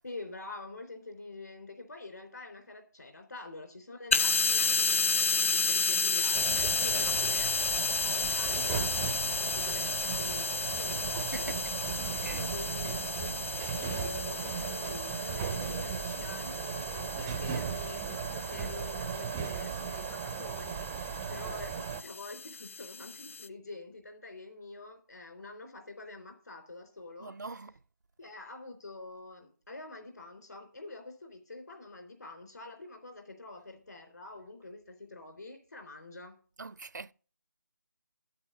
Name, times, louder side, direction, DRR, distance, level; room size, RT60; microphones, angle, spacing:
voice 1, 0.0-7.5 8.0-11.6 12.2-27.4 28.2-36.4, left 2 dB, 65° left, 3.6 m, -46 dB
sound 1, 4.1-23.5, left 5 dB, 40° left, 0.5 m, -32 dB
sound 2, 6.3-22.0, right 7 dB, 10° right, 0.4 m, -36 dB
voice 2, 11.2-11.7 12.0-12.5 21.1-21.4 27.2-27.7 36.6-37.1, right 3 dB, 70° right, 0.5 m, -43 dB
8.7 x 7.9 x 6.8 m
figure-of-eight pair, 155°, 10 cm